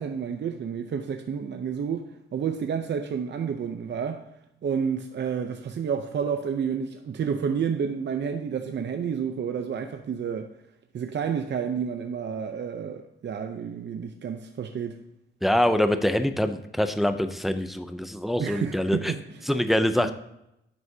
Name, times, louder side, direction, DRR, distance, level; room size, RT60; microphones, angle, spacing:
voice 1, 0.0-4.2 4.6-10.5 10.9-15.0 18.4-19.5 20.0-20.1, right 7 dB, 60° right, 0.7 m, -30 dB
voice 2, 15.4-19.1 19.5-20.1, left 1 dB, ahead, 0.5 m, -24 dB
10.0 x 7.9 x 2.8 m
wide cardioid pair, 120°, 20 cm